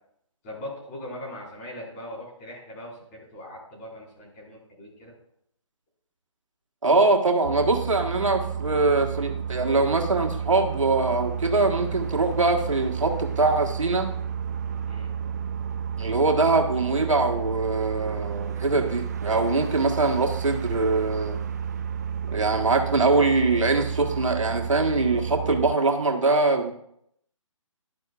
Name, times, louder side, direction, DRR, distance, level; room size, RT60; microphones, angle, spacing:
voice 1, 0.4-5.1 14.9-15.1, left 1 dB, 25° left, -5 dB, 5.0 m, -40 dB
voice 2, 6.8-14.1 16.0-21.4 22.3-26.7, right 3 dB, 70° right, 2 dB, 1.7 m, -23 dB
sound 1, 7.4-25.8, right 7 dB, 30° right, 0.4 m, -31 dB
12.5 x 11.0 x 2.5 m, 0.72 s
figure-of-eight pair, 140°, 17 cm